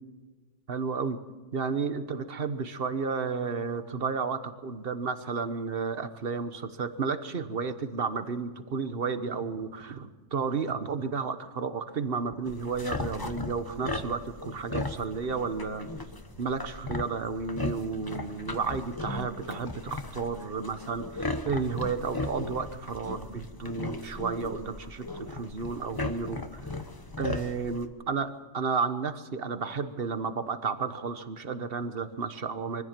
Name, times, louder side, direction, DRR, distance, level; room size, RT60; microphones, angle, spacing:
voice 1, 0.7-1.2 1.5-15.9 16.4-26.7 27.2-32.8, right 5 dB, 50° right, 10 dB, 1.3 m, -32 dB
sound 1, 12.4-27.9, left 2 dB, 20° left, 1.0 m, -37 dB
23.5 x 15.0 x 7.6 m, 1.3 s
omnidirectional pair, 1.2 m